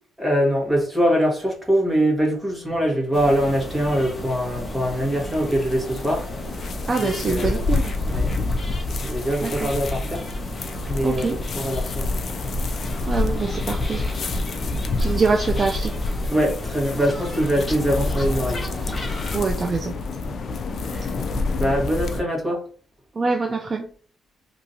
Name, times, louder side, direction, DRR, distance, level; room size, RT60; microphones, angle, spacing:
voice 1, 0.2-6.3 6.6-7.6 8.1-8.3 9.0-10.2 10.9-12.0 14.7-14.8 16.3-18.6 20.3-20.4 20.8-20.9 21.6-22.6, equal, 15° right, -2 dB, 1.4 m, -23 dB
sound 1, 3.1-19.5, left 1 dB, 30° left, 0.9 m, -34 dB
sound 2, 4.5-22.2, left 2 dB, 55° left, 0.4 m, -28 dB
voice 2, 6.9-8.0 9.4-9.7 11.0-11.4 13.1-14.0 15.0-16.0 19.3-20.0 20.9-21.1 23.2-23.9, right 4 dB, 35° right, 3 dB, 0.4 m, -24 dB
2.8 x 2.6 x 2.6 m, 0.43 s
cardioid pair, 90°, 0 cm